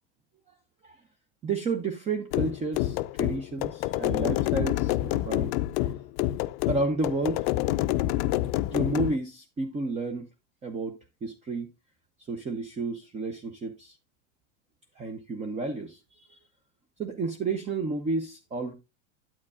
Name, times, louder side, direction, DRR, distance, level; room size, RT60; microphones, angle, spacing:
voice 1, 1.4-5.9 6.7-7.5 8.7-10.3 10.6-11.7 12.3-13.9 15.0-16.3 17.0-18.7, right 3 dB, 20° right, 0.8 m, -31 dB
sound 1, 2.3-9.2, left 16 dB, 55° left, 0.5 m, -27 dB
9.5 x 8.7 x 2.3 m
supercardioid pair, 130°, 36 cm